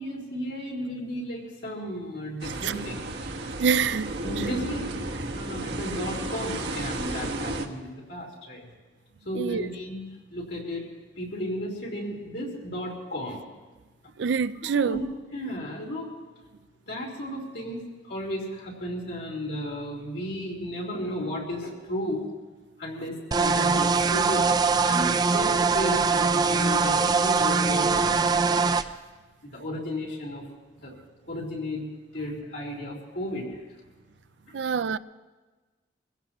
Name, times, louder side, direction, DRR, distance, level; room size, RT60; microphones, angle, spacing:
voice 1, 0.0-3.0 4.2-8.7 9.2-10.8 11.2-13.4 14.6-15.0 15.3-16.1 16.9-17.8 18.0-22.2 22.8-24.5 24.8-28.4 29.4-30.4 30.8-31.0 31.2-31.8 32.1-33.5, equal, 70° left, 3.9 m, -34 dB
sound 1, 2.4-7.7, right 2 dB, 70° right, 1.3 m, -33 dB
voice 2, 3.6-4.1 9.3-9.7 14.2-15.0 34.5-35.0, right 6 dB, 90° right, 0.4 m, -25 dB
sound 2, 23.3-28.8, right 4 dB, 25° right, 0.4 m, -22 dB
24.5 x 16.0 x 3.0 m
head